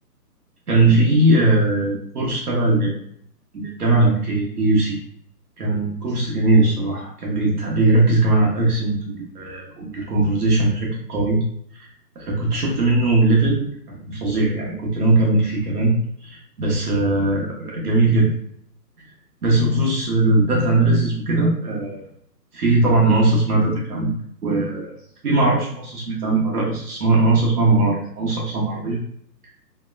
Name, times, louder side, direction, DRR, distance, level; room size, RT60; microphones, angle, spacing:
voice 1, 0.7-3.0 3.5-5.0 5.6-11.4 12.1-15.9 16.2-18.3 19.4-22.0 22.5-24.2 24.4-24.9 25.2-29.0, right 2 dB, 65° right, -4 dB, 1.0 m, -19 dB
2.8 x 2.1 x 2.3 m, 0.66 s
hypercardioid pair, 170°, 50 cm